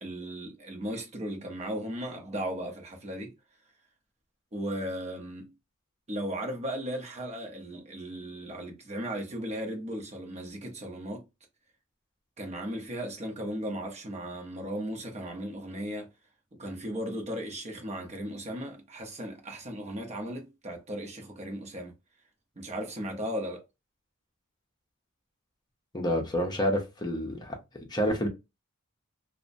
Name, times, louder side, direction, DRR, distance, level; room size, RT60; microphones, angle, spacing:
voice 1, 0.0-3.3 4.5-5.5 6.1-11.2 12.4-16.1 16.6-21.9 22.6-23.6, equal, 30° right, 0.8 m, -36 dB
voice 2, 25.9-27.6 27.9-28.3, equal, 20° left, 0.7 m, -28 dB
2.8 x 2.1 x 2.5 m
head